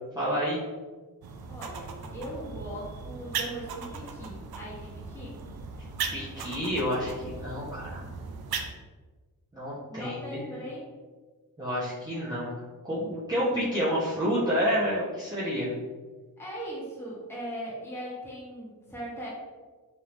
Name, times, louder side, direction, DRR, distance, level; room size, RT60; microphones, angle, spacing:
voice 1, 0.1-0.6 6.1-8.0 9.5-10.4 11.6-12.5 12.8-15.7, equal, 10° right, -11 dB, 1.0 m, -29 dB
sound 1, 1.2-8.7, right 5 dB, 80° right, 0.5 m, -38 dB
voice 2, 1.5-5.4 9.9-10.9 16.4-19.3, right 1 dB, 5° left, -8 dB, 1.4 m, -39 dB
3.7 x 3.3 x 3.0 m, 1.3 s
wide cardioid pair, 105°, 36 cm